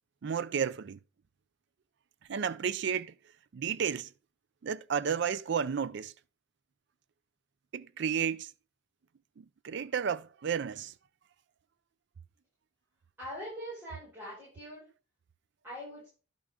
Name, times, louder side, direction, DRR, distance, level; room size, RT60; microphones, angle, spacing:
voice 1, 0.2-1.0 2.3-3.1 3.5-4.1 4.6-6.1 7.7-8.5 9.4-10.9, right 7 dB, 60° right, 0.4 m, -32 dB
voice 2, 13.2-14.8 15.6-16.1, equal, 10° right, 5.7 m, -42 dB
10.5 x 6.0 x 3.7 m
head